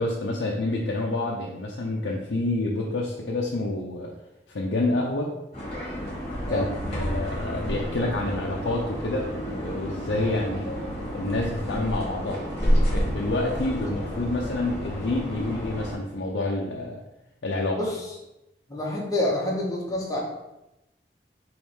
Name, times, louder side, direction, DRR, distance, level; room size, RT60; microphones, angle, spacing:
voice 1, 0.0-4.1 4.5-5.3 6.5-10.7 11.1-12.4 12.9-17.0 17.4-17.8, left 2 dB, 85° left, -2 dB, 0.6 m, -28 dB
sound 1, 5.5-15.9, equal, 35° left, 1.4 m, -30 dB
voice 2, 17.7-18.0 18.7-20.2, left 1 dB, 20° left, -3 dB, 1.0 m, -27 dB
3.5 x 3.1 x 4.7 m, 0.92 s
head